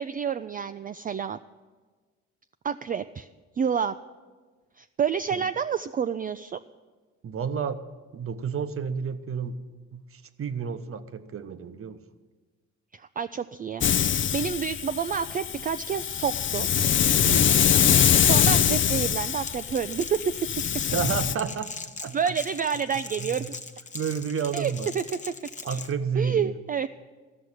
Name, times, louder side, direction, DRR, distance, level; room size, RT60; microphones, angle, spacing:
voice 1, 0.0-1.4 2.6-3.3 3.6-4.0 4.8-6.6 12.9-16.7 18.2-20.3 22.1-23.4 24.5-25.0 25.7-25.8 26.2-26.9, right 7 dB, 30° right, 10 dB, 0.3 m, -29 dB
voice 2, 7.2-7.8 8.1-9.6 9.9-12.0 17.2-17.6 20.9-21.7 22.0-22.3 23.2-23.5 23.9-24.9 25.6-26.5, right 6 dB, 45° right, 10 dB, 0.9 m, -31 dB
Hiss, 13.8-21.3, left 9 dB, 40° left, 0.5 m, -23 dB
Crackle, 19.4-25.9, left 4 dB, 25° left, 0.9 m, -40 dB
13.5 x 6.2 x 9.5 m, 1.4 s
cardioid pair, 90°, 30 cm